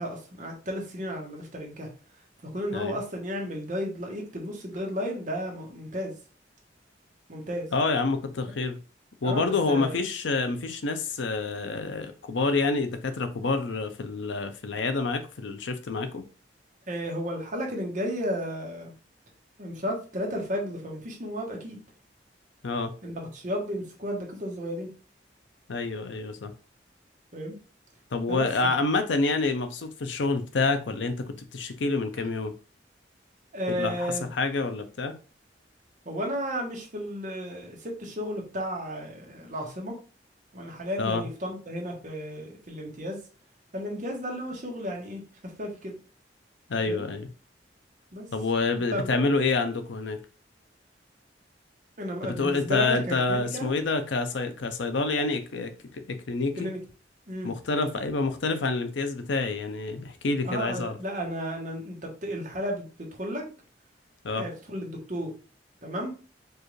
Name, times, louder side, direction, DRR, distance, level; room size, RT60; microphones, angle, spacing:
voice 1, 0.0-1.9 2.4-6.2 7.3-7.7 9.2-9.9 16.9-18.9 19.6-21.8 23.0-24.9 27.3-27.6 28.3-28.5 32.2-32.3 33.5-34.3 36.0-40.0 40.5-43.2 43.7-46.0 46.9-47.0 48.1-48.3 48.9-49.3 52.0-53.7 56.6-56.8 57.3-57.5 60.4-63.5 64.3-65.3 65.8-66.1, equal, 45° right, 0 dB, 1.2 m, -33 dB
voice 2, 7.7-8.8 9.2-16.2 22.6-22.9 25.7-26.5 28.1-32.5 33.7-34.1 34.3-35.1 41.0-41.3 46.7-47.3 48.3-50.2 52.2-56.7 57.4-61.0 64.2-64.4, left 3 dB, 85° left, 8 dB, 0.6 m, -28 dB
4.6 x 2.5 x 3.1 m, 0.35 s
head